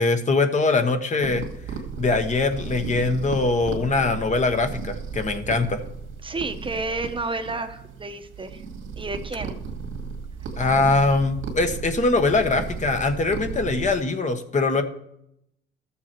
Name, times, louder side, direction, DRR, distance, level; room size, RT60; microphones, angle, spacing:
voice 1, 0.0-1.4 2.0-5.8 10.6-14.8, left 3 dB, 35° left, 7 dB, 1.2 m, -22 dB
sound 1, 1.2-14.0, right 5 dB, 80° right, 2.0 m, -35 dB
voice 2, 6.2-8.6 9.0-9.5, right 3 dB, 25° right, 8 dB, 1.0 m, -31 dB
13.0 x 7.2 x 4.5 m, 0.77 s
cardioid pair, 90°, 20 cm